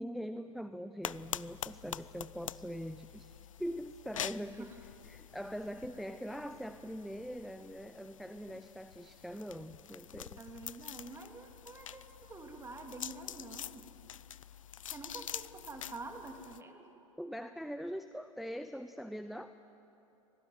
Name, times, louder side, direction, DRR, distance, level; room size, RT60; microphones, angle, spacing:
voice 1, 0.0-4.7 5.0-10.4 17.2-19.5, equal, ahead, 10 dB, 0.6 m, -42 dB
sound 1, 1.0-16.6, left 10 dB, 80° left, 0.5 m, -46 dB
voice 2, 10.4-13.9 14.8-16.9, right 2 dB, 15° right, 4 dB, 2.8 m, -47 dB
25.0 x 19.0 x 9.3 m, 2.9 s
figure-of-eight pair, 90°, 17 cm